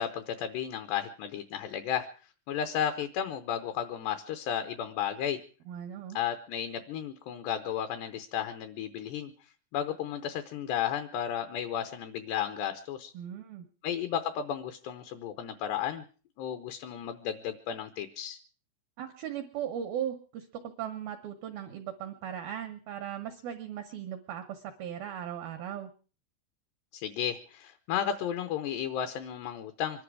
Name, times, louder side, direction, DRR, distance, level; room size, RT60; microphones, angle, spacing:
voice 1, 0.0-2.1 2.5-5.4 6.1-9.3 9.7-13.1 13.8-16.0 16.4-18.4 26.9-30.0, left 9 dB, 75° left, 8 dB, 2.6 m, -33 dB
voice 2, 5.7-6.2 13.1-13.7 19.0-25.9, right 9 dB, 80° right, 6 dB, 2.1 m, -38 dB
25.0 x 11.5 x 4.8 m, 0.39 s
omnidirectional pair, 5.7 m